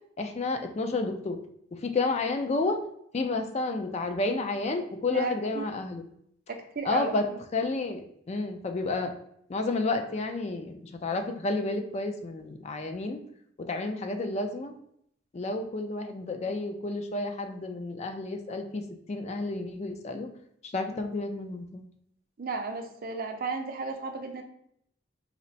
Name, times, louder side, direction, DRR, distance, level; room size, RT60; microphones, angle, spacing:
voice 1, 0.2-1.4 1.8-2.8 3.1-6.0 6.8-7.3 7.5-9.1 9.5-10.7 11.0-13.2 13.7-14.7 15.3-18.8 19.1-20.3 20.7-21.8, left 3 dB, 35° left, 5 dB, 0.4 m, -30 dB
voice 2, 5.1-5.6 6.5-7.4 22.4-24.4, right 4 dB, 50° right, 5 dB, 0.5 m, -34 dB
4.2 x 2.1 x 4.0 m, 0.69 s
head